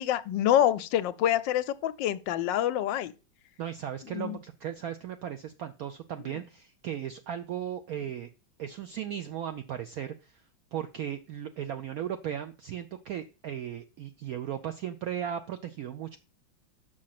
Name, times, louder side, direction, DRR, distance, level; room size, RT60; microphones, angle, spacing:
voice 1, 0.0-3.1 4.1-4.4, left 11 dB, 80° left, 1.2 m, -26 dB
voice 2, 3.6-8.3 8.6-10.4 10.7-16.2, right 10 dB, 75° right, 0.8 m, -36 dB
6.3 x 6.2 x 5.8 m
omnidirectional pair, 2.1 m